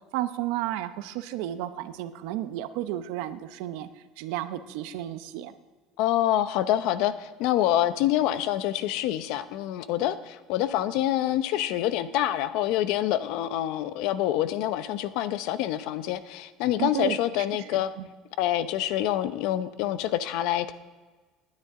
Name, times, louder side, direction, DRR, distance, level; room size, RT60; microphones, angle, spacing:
voice 1, 0.1-3.9 4.2-5.5 16.8-17.2 17.7-18.1, right 13 dB, 75° right, 11 dB, 0.8 m, -32 dB
voice 2, 6.0-17.9 18.4-20.7, left 12 dB, 65° left, 13 dB, 0.7 m, -26 dB
19.5 x 9.7 x 3.7 m, 1.3 s
cardioid pair, 165°, 0 cm